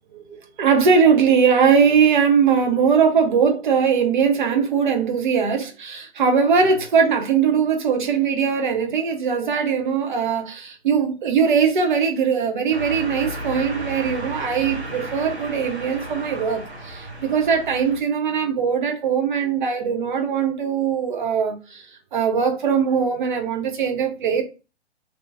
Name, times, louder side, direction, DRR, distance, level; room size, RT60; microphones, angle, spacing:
voice 1, 0.1-21.9 22.1-24.4, right 6 dB, 45° right, 0.9 m, -20 dB
sound 1, 12.7-18.0, right 1 dB, 70° right, 1.1 m, -34 dB
3.0 x 2.8 x 3.3 m
figure-of-eight pair, 125°, 34 cm